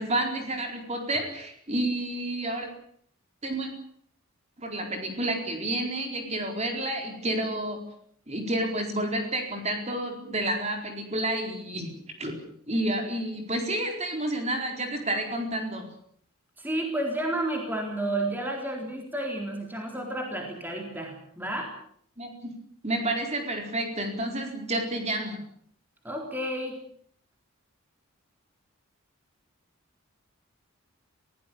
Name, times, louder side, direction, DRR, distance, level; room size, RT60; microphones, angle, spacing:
voice 1, 0.0-2.7 3.4-3.7 4.6-7.8 8.3-11.9 12.2-12.4 12.7-15.9 22.2-22.5 22.8-25.4, right 1 dB, 30° right, 3 dB, 4.4 m, -30 dB
voice 2, 16.6-21.7 26.0-26.8, right 1 dB, 10° right, 1 dB, 3.9 m, -31 dB
23.0 x 16.5 x 8.5 m, 0.64 s
head